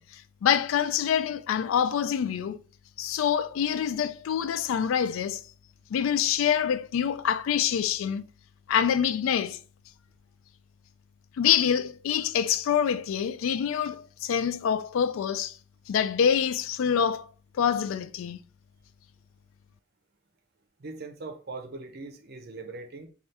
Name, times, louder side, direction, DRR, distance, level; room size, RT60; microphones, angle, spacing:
voice 1, 0.0-2.6 3.0-5.4 5.9-8.3 8.7-9.6 11.4-15.6 15.9-17.3 17.5-18.4, left 8 dB, 75° left, 0.3 m, -26 dB
voice 2, 20.8-23.1, right 3 dB, 50° right, 0.6 m, -40 dB
3.3 x 2.4 x 4.1 m
head